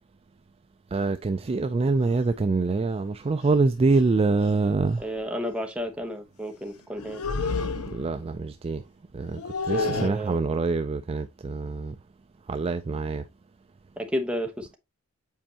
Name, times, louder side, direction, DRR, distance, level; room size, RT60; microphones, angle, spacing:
voice 1, 0.9-5.0 7.9-8.8 9.1-9.4 9.7-12.0 12.5-13.2, right 3 dB, 25° right, 0.3 m, -25 dB
sound 1, 2.0-2.2 3.4-3.5 3.9-4.1 4.4-4.6 7.0-8.2 9.2-10.1, left 4 dB, 85° left, 0.7 m, -30 dB
voice 2, 5.0-7.2 9.7-10.4 14.0-14.8, equal, 5° right, 1.0 m, -31 dB
7.5 x 4.4 x 2.8 m
head